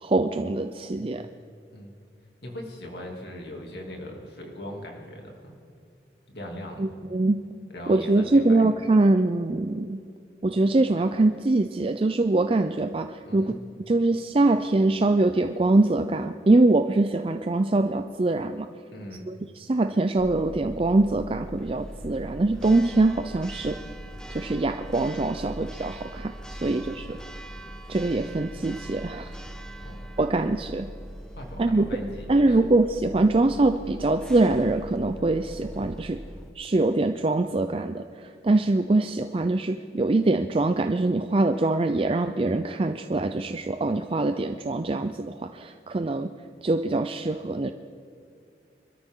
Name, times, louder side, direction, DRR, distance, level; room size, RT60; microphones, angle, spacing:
voice 1, 0.0-1.3 6.8-7.4 7.9-10.0 10.4-13.5 13.9-18.7 19.3-23.8 24.3-27.2 27.9-29.3 30.2-30.9 31.6-31.9 32.3-36.2 36.6-46.3 46.6-47.7, right 2 dB, 30° right, 8 dB, 0.4 m, -23 dB
voice 2, 1.0-1.3 1.7-1.9 2.4-5.6 6.3-7.0 7.7-8.7 13.2-13.6 18.9-19.3 26.6-26.8 29.8-30.0 31.3-32.6, equal, 60° left, 0 dB, 2.8 m, -40 dB
Church bell, 20.2-36.5, equal, 5° left, 0.9 m, -41 dB
25.5 x 13.5 x 3.8 m, 2.4 s
head